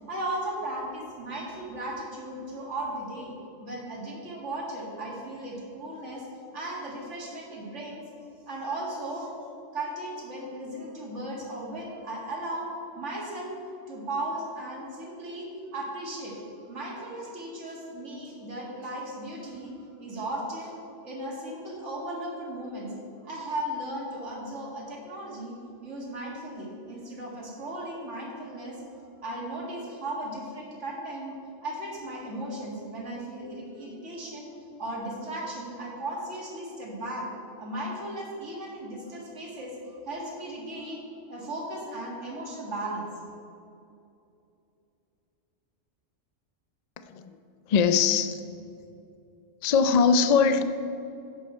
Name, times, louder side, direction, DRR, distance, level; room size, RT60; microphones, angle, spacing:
voice 1, 0.1-3.3 3.6-6.3 6.5-8.0 8.5-9.3 9.7-13.6 13.9-16.4 16.7-20.8 21.0-22.9 23.2-25.6 25.8-28.8 29.2-31.4 31.6-34.5 34.8-37.3 37.6-41.0 41.3-43.2, right 1 dB, 65° right, -2 dB, 2.2 m, -36 dB
voice 2, 47.0-47.4 47.7-48.4 49.6-50.6, left 6 dB, 70° left, 10 dB, 0.4 m, -22 dB
10.5 x 7.4 x 4.3 m, 2.7 s
omnidirectional pair, 1.3 m